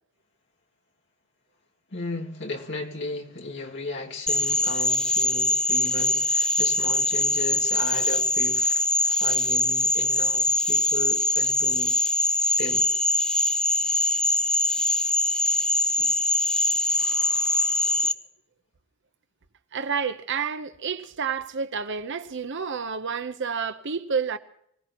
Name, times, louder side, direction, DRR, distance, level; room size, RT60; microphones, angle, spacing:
voice 1, 1.9-12.0 12.6-12.8, left 3 dB, 55° left, 2.5 m, -35 dB
Frog, 4.3-18.1, left 1 dB, 5° left, 0.6 m, -23 dB
voice 2, 19.7-24.4, right 6 dB, 55° right, 0.9 m, -29 dB
25.0 x 18.0 x 3.1 m
head